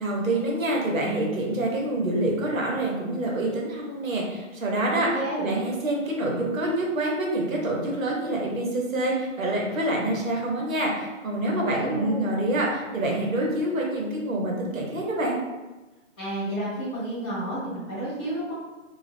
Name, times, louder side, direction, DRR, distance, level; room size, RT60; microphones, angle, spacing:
voice 1, 0.0-5.1 5.4-15.4, right 1 dB, 85° right, -2 dB, 0.9 m, -26 dB
voice 2, 4.9-5.5 11.5-12.3 16.2-18.5, right 1 dB, 20° left, -17 dB, 0.6 m, -31 dB
2.3 x 2.0 x 3.2 m, 1.1 s
hypercardioid pair, 160°, 40 cm